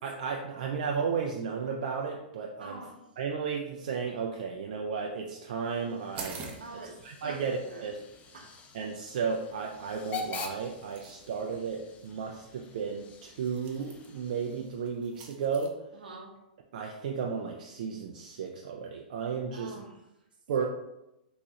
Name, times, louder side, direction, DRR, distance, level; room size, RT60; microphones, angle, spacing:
voice 1, 0.0-2.8 3.2-6.5 7.0-8.0 8.7-15.8 16.7-19.7 20.5-20.7, right 6 dB, 65° right, 1 dB, 0.4 m, -33 dB
voice 2, 2.6-3.1 6.6-7.9 8.3-8.6 15.9-16.3 19.5-20.0 20.6-20.7, right 2 dB, 85° right, 1 dB, 0.8 m, -46 dB
Hiss / Train / Alarm, 5.4-15.0, left 5 dB, 30° left, 0.5 m, -46 dB
sound 1, 6.1-15.7, right 4 dB, 30° right, 0.7 m, -50 dB
3.6 x 3.0 x 2.8 m, 0.90 s
hypercardioid pair, 110°, 5 cm